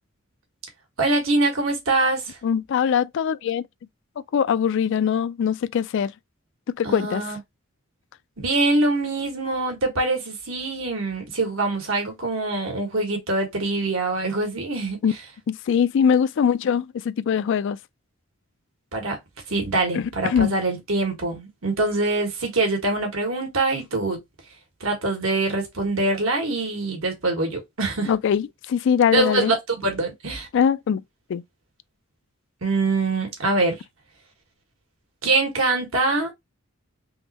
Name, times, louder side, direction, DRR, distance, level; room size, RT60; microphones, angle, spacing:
voice 1, 1.0-2.4 6.8-7.4 8.4-15.0 18.9-19.2 19.5-24.2 24.8-28.1 29.1-30.5 32.6-33.8 35.2-36.3, right 2 dB, 90° right, 1.5 m, -24 dB
voice 2, 2.4-3.7 4.3-6.1 6.8-7.2 15.0-15.1 15.5-17.8 19.9-20.5 28.1-29.5 30.5-31.0 31.3-31.4, left 7 dB, 60° left, 0.3 m, -22 dB
3.6 x 3.0 x 2.8 m
head